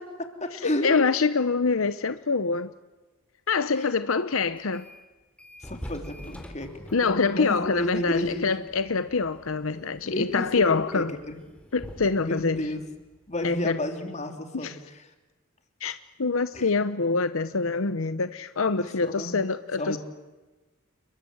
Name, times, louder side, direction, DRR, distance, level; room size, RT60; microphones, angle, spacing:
voice 1, 0.0-0.9 3.7-3.9 5.6-8.5 10.0-11.4 12.0-12.8 13.3-15.1 16.5-16.7 18.8-19.4 19.8-20.0, left 1 dB, 35° left, 6 dB, 3.1 m, -32 dB
voice 2, 0.8-2.7 3.5-4.9 6.9-11.1 11.7-12.6 13.4-13.8 14.5-14.7 15.8-20.0, left 4 dB, 75° left, 12 dB, 0.9 m, -25 dB
sound 1, 4.6-5.1 5.4-13.8, equal, 5° left, 3.9 m, -46 dB
29.5 x 22.5 x 7.9 m, 1.2 s
head